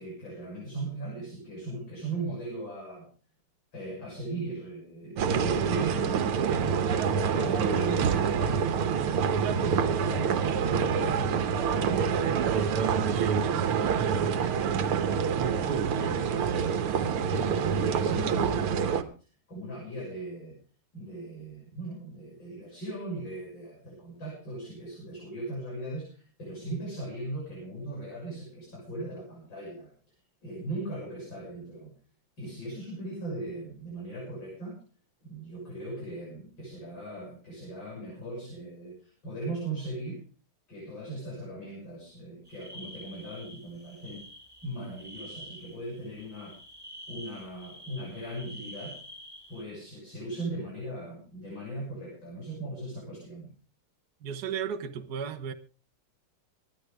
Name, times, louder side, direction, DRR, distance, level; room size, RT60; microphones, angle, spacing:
voice 1, 0.0-3.1 3.7-6.5 7.0-11.4 11.7-14.9 15.6-19.1 19.5-20.6 20.9-29.9 30.4-31.9 32.4-34.8 35.2-40.2 40.7-44.2 44.6-46.6 47.1-49.0 49.5-53.5, right 2 dB, 55° left, 7.7 m, -38 dB
sound 1, 5.2-19.0, right 7 dB, 85° right, 2.0 m, -26 dB
sound 2, 42.5-49.6, equal, 10° right, 3.2 m, -48 dB
voice 2, 54.2-55.5, right 7 dB, 55° right, 1.3 m, -34 dB
26.0 x 10.5 x 3.5 m
omnidirectional pair, 2.4 m